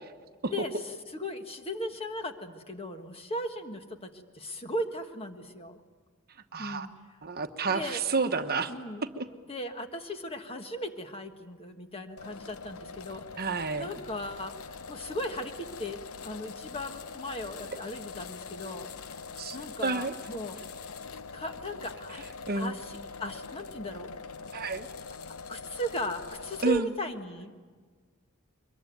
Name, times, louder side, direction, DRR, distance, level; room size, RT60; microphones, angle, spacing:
voice 1, 1.2-5.8 6.6-6.9 7.7-8.0 8.7-9.0 9.5-13.2 13.8-19.2 19.5-20.6 21.3-22.2 22.5-24.1 25.5-27.5, equal, 25° left, 6 dB, 1.5 m, -37 dB
voice 2, 6.5-6.9 7.2-8.7 9.0-9.3 13.4-13.9 17.7-17.8 19.4-20.1 22.5-22.8 24.5-24.9 26.6-26.9, right 3 dB, 45° right, 7 dB, 1.1 m, -30 dB
sound 1, 12.2-26.8, left 5 dB, 80° left, 0.8 m, -43 dB
23.5 x 22.0 x 9.2 m, 1.5 s
head